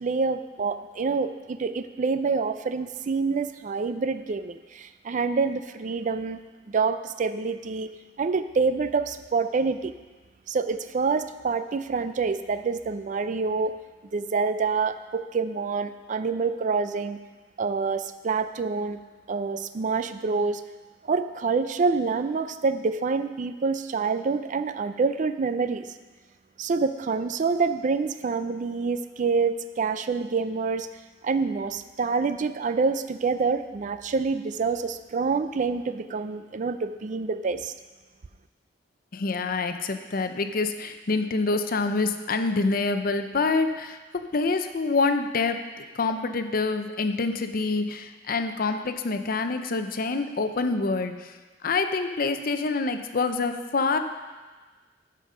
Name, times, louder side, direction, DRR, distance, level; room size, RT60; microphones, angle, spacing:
voice 1, 0.0-6.4 6.7-9.9 10.5-13.8 14.1-17.2 17.6-19.0 19.3-20.6 21.0-25.9 26.6-30.9 31.2-37.7, right 4 dB, 45° right, 11 dB, 0.4 m, -27 dB
voice 2, 39.1-44.0 44.3-51.3 51.6-54.0, left 3 dB, 50° left, 8 dB, 0.6 m, -26 dB
12.5 x 5.3 x 5.5 m, 1.3 s
head